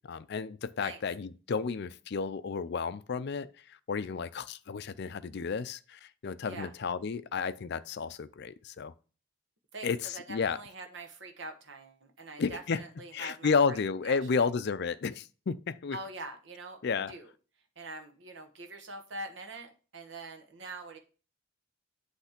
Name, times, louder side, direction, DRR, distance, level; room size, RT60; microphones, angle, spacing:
voice 1, 0.0-8.9 9.8-10.6 12.4-12.8 13.1-16.0 16.8-17.1, left 5 dB, 55° left, 0.4 m, -32 dB
voice 2, 9.7-14.4 15.9-17.3 17.8-21.0, right 2 dB, 60° right, 1.3 m, -44 dB
8.2 x 3.3 x 5.8 m
head